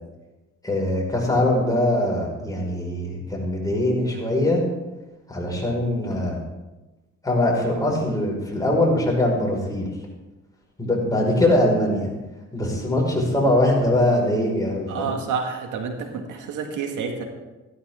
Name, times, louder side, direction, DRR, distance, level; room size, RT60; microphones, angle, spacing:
voice 1, 0.6-4.6 5.3-6.4 7.2-9.9 10.8-12.1 12.5-15.1, left 1 dB, 10° left, -2 dB, 5.4 m, -22 dB
voice 2, 14.9-17.2, right 5 dB, 80° right, 3 dB, 2.0 m, -29 dB
15.5 x 12.5 x 3.8 m, 1.1 s
cardioid pair, 90°, 30 cm